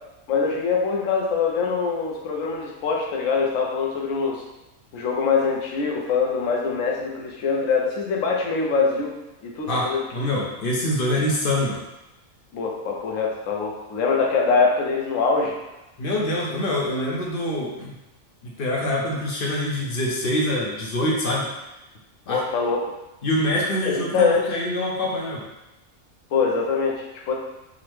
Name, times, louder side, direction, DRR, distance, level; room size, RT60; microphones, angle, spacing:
voice 1, 0.3-4.4 4.9-9.1 9.4-10.3 12.5-15.6 22.3-22.8 23.8-24.4 26.3-27.3, left 5 dB, 70° left, -1 dB, 1.0 m, -23 dB
voice 2, 9.7-11.8 16.0-17.9 18.4-21.5 22.3-22.4 23.2-25.4, left 1 dB, 50° left, -3 dB, 0.7 m, -25 dB
3.7 x 2.1 x 3.0 m, 0.98 s
omnidirectional pair, 1.4 m